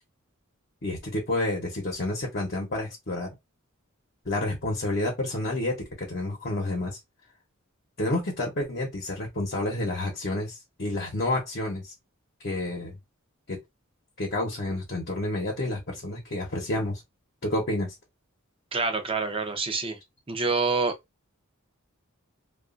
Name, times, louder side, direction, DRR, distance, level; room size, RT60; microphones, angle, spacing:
voice 1, 0.8-3.3 4.3-7.0 8.0-11.9 12.4-12.9 13.5-13.6 14.2-17.0 17.4-17.9, left 1 dB, 50° left, 0.9 m, -29 dB
voice 2, 18.7-20.0 20.3-20.9, right 4 dB, 25° right, 0.6 m, -26 dB
2.9 x 2.4 x 2.5 m
head